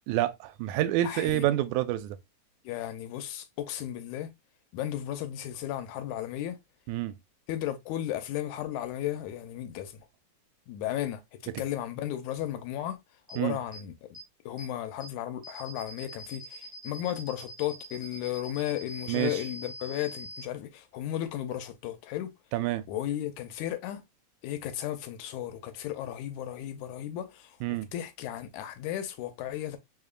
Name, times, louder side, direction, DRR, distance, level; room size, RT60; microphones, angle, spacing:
voice 1, 0.1-2.2 6.9-7.1 13.4-13.6 19.1-19.3 22.5-22.8 27.6-27.9, right 14 dB, 90° right, 2.0 m, -28 dB
voice 2, 1.0-1.5 2.6-4.3 4.7-6.6 7.5-10.0 10.7-13.0 13.3-14.2 14.5-22.3 22.9-24.0 24.4-29.8, left 12 dB, 85° left, 2.1 m, -35 dB
sound 1, 13.3-13.4 13.7-13.8 14.1-14.2 14.6-14.7 15.0-15.1 15.4-20.4, left 1 dB, 65° right, 0.8 m, -43 dB
4.6 x 2.9 x 2.3 m
omnidirectional pair, 3.3 m